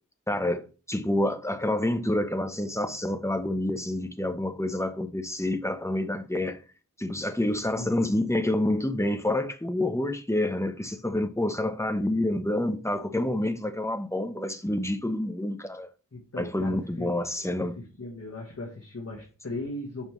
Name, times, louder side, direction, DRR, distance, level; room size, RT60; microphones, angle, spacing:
voice 1, 0.3-6.6 7.0-15.9 16.4-17.8, left 1 dB, 10° left, 0.9 m, -28 dB
voice 2, 16.1-17.2 17.6-17.7 18.0-20.1, left 2 dB, 45° left, 1.5 m, -38 dB
7.2 x 5.2 x 3.2 m
wide cardioid pair, 50°, 33 cm